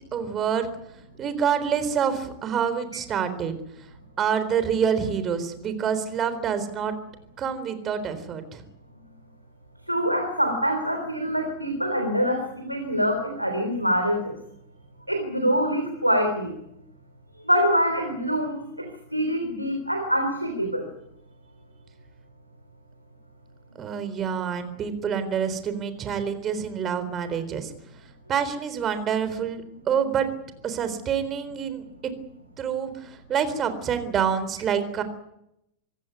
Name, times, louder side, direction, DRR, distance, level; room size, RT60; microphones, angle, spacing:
voice 1, 0.1-0.7 1.2-3.5 4.2-6.9 7.4-8.6 23.8-27.7 28.3-30.3 30.6-32.1 32.6-35.0, right 7 dB, 25° right, 11 dB, 3.9 m, -27 dB
voice 2, 9.9-14.3 15.1-16.6 17.4-20.9, equal, 90° right, 5 dB, 3.5 m, -25 dB
26.0 x 16.0 x 9.7 m, 0.82 s
figure-of-eight pair, 90°, 0 cm